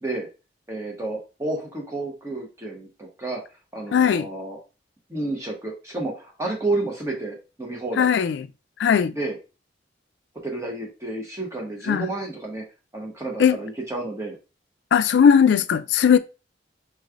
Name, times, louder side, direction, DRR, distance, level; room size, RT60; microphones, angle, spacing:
voice 1, 0.7-3.4 3.7-4.6 5.1-8.1 9.1-9.4 10.4-12.6 12.9-14.4, right 2 dB, 15° right, 0.9 m, -30 dB
voice 2, 3.9-4.3 8.0-8.5 8.8-9.1 11.9-12.1 13.4-13.6 14.9-16.2, left 7 dB, 70° left, 0.3 m, -18 dB
4.5 x 3.1 x 2.4 m
head